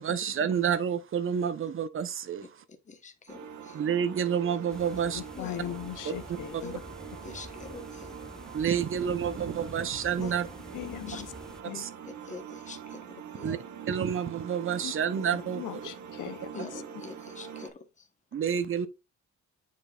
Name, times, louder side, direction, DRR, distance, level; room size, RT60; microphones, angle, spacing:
voice 1, 0.0-2.6 3.7-5.2 6.0-6.6 8.5-10.5 11.7-11.9 13.4-13.6 13.9-15.9 18.3-18.9, right 8 dB, 45° right, 0.8 m, -29 dB
voice 2, 2.9-3.8 5.3-5.7 6.6-6.7 7.2-8.1 10.2-10.3 11.1-11.2 11.7-13.1 13.3-13.6 16.5-18.1, left 4 dB, 25° left, 1.0 m, -45 dB
sound 1, 3.3-17.7, right 7 dB, 75° right, 1.4 m, -44 dB
sound 2, 4.7-11.6, left 1 dB, ahead, 0.4 m, -48 dB
voice 3, 5.1-6.8 10.2-10.3 10.7-11.3 11.6-11.8 14.8-15.2 15.5-16.8, left 12 dB, 85° left, 0.7 m, -39 dB
9.0 x 5.1 x 2.4 m
wide cardioid pair, 170°, 30 cm